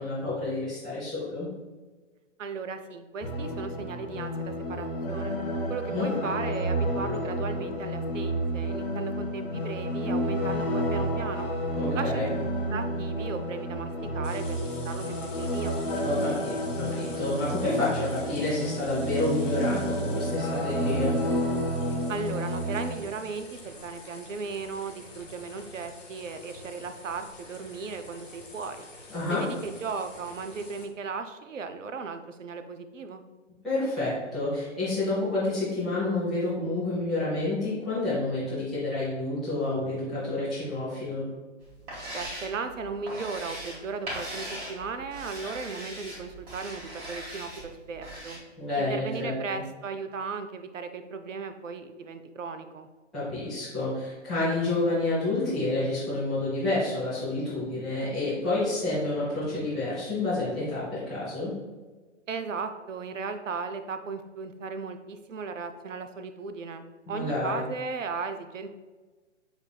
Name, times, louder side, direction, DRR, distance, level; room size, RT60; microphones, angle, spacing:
voice 1, 0.0-1.5 5.9-6.1 11.8-12.3 16.0-21.1 29.1-29.4 33.6-41.2 48.6-49.6 53.1-61.5 67.0-67.6, left 2 dB, ahead, -19 dB, 0.3 m, -29 dB
voice 2, 2.4-5.4 5.7-11.5 11.9-12.3 12.7-15.8 22.1-28.9 29.3-33.2 42.1-48.4 48.8-52.9 62.3-68.7, right 5 dB, 85° right, 8 dB, 0.5 m, -36 dB
sound 1, 3.2-23.0, equal, 50° left, 1.0 m, -30 dB
sound 2, 14.2-30.9, left 2 dB, 75° left, 1.1 m, -48 dB
sound 3, 41.6-48.4, right 1 dB, 25° right, 1.5 m, -40 dB
5.8 x 3.2 x 2.2 m, 1.3 s
figure-of-eight pair, 120°, 37 cm